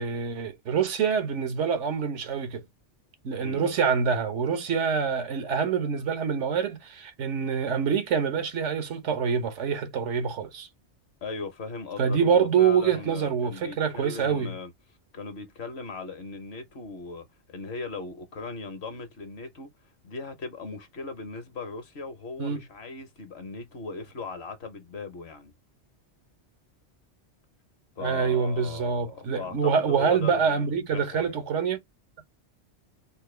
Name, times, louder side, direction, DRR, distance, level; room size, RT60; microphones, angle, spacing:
voice 1, 0.0-2.6 3.2-10.7 12.0-14.5 22.4-22.6 28.0-31.8, right 6 dB, 85° right, 1.2 m, -26 dB
voice 2, 3.4-3.7 11.2-14.7 15.1-19.7 20.0-25.5 28.0-31.4, left 4 dB, 65° left, 1.2 m, -38 dB
4.0 x 2.2 x 3.2 m
omnidirectional pair, 1.2 m